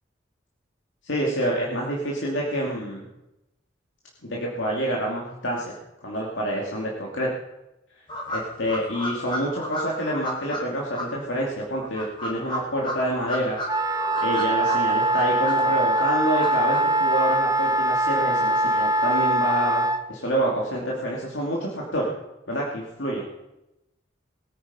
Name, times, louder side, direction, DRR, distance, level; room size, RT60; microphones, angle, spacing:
voice 1, 1.0-3.1 4.2-7.3 8.3-13.6 14.2-22.1 22.5-23.2, right 1 dB, 85° left, -3 dB, 2.6 m, -27 dB
sound 1, 8.1-10.6 10.9-11.0 11.8-13.7 13.9-15.6 15.9-16.8, left 1 dB, 25° left, 3.8 m, -33 dB
Wind instrument woodwind instrument, 13.7-20.0, right 1 dB, 20° right, 0.7 m, -22 dB
21.5 x 9.4 x 5.6 m, 0.96 s
head